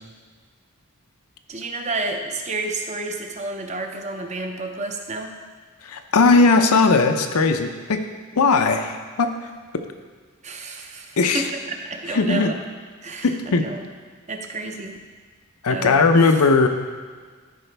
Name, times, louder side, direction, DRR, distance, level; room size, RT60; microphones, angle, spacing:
voice 1, 1.5-5.4 10.4-12.6 13.0-13.8 14.3-15.0 15.7-16.4, right 2 dB, 30° right, 3 dB, 0.7 m, -30 dB
voice 2, 5.8-8.0 8.4-9.3 11.2-11.4 12.1-12.5 13.2-13.6 15.6-16.7, left 4 dB, 80° left, 6 dB, 0.6 m, -18 dB
13.0 x 4.9 x 3.4 m, 1.5 s
head